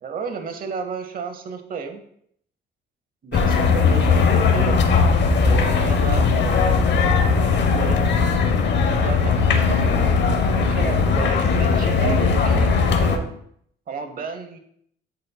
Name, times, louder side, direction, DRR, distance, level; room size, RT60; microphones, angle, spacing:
voice 1, 0.0-2.0 3.2-4.8 5.4-6.8 7.5-8.1 9.0-10.1 10.5-13.2 13.9-14.6, right 5 dB, 45° right, 6 dB, 0.8 m, -32 dB
sound 1, 3.3-13.2, left 5 dB, 60° left, 0.8 m, -18 dB
10.5 x 4.1 x 2.2 m, 0.67 s
cardioid pair, 90°, 20 cm